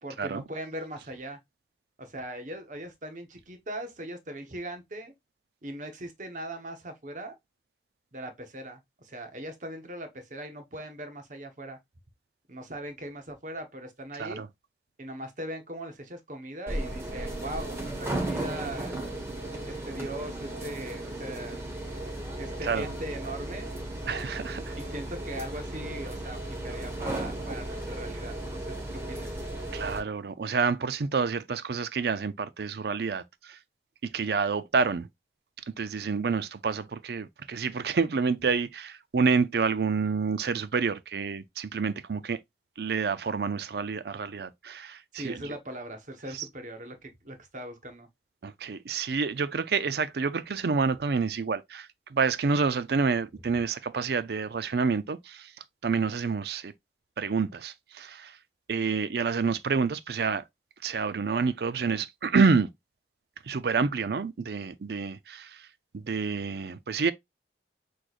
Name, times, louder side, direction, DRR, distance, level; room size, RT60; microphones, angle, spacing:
voice 1, 0.0-1.4 2.0-5.1 5.6-7.3 8.1-11.8 12.5-14.4 15.0-18.9 19.6-21.6 22.0-22.1 22.4-23.7 24.8-29.3 45.1-48.1, right 1 dB, 45° right, 1.0 m, -40 dB
sound 1, 16.7-30.0, right 1 dB, 15° right, 1.2 m, -35 dB
voice 2, 24.1-24.8 29.7-33.6 34.0-35.1 35.8-42.4 42.8-45.3 48.4-55.5 55.8-56.7 57.2-58.4 58.7-60.4 60.8-62.7 63.4-65.6 65.9-67.1, right 5 dB, 60° right, 0.5 m, -28 dB
6.1 x 3.2 x 2.4 m
head